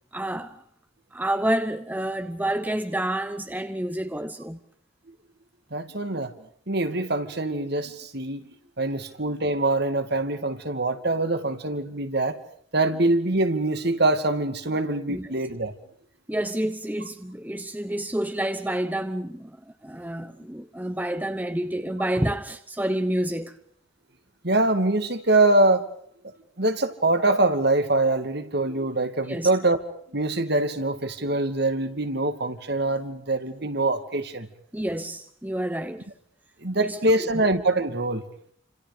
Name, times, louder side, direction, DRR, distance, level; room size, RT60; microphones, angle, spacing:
voice 1, 0.1-0.6 1.1-4.6 15.1-15.3 16.3-19.6 19.8-23.6 29.3-29.5 34.7-36.1 36.8-37.3, right 1 dB, 10° right, 0.9 m, -29 dB
voice 2, 5.7-6.3 6.7-8.5 8.8-12.4 12.7-15.7 24.4-25.9 26.6-29.8 30.1-34.5 36.6-38.2, right 2 dB, 55° right, 2.4 m, -24 dB
29.0 x 27.0 x 5.1 m
head